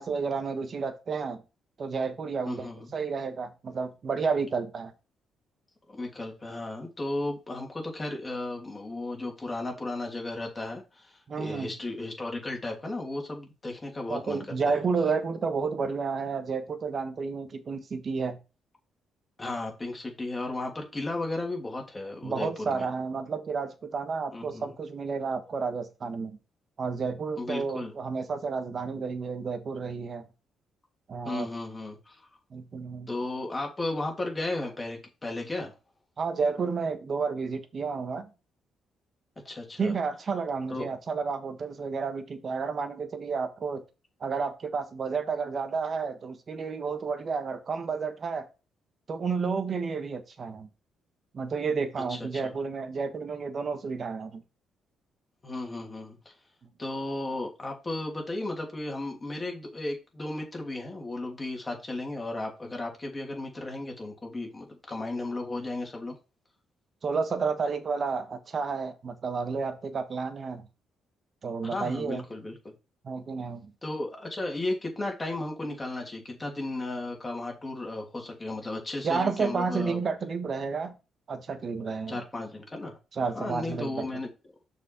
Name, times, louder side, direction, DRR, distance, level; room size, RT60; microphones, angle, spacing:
voice 1, 0.0-1.4 1.8-4.9 11.3-11.8 14.1-18.4 22.2-26.4 26.8-30.3 31.1-31.5 32.5-33.1 36.2-38.3 39.8-43.8 44.2-48.5 49.1-50.7 51.3-54.4 67.0-70.7 71.4-72.2 73.0-73.7 79.0-80.9 81.3-82.2 83.2-84.1, right 5 dB, 45° right, 1.3 m, -31 dB
voice 2, 2.5-2.9 5.9-14.8 19.4-22.9 24.3-24.7 27.4-28.0 31.2-32.3 33.1-35.7 39.4-39.9 40.7-40.9 52.1-52.5 55.4-56.3 56.8-66.2 71.6-72.7 73.8-80.0 82.1-83.0 83.3-84.3, left 2 dB, 20° left, 2.8 m, -35 dB
6.4 x 5.0 x 4.5 m
cardioid pair, 90°, 0 cm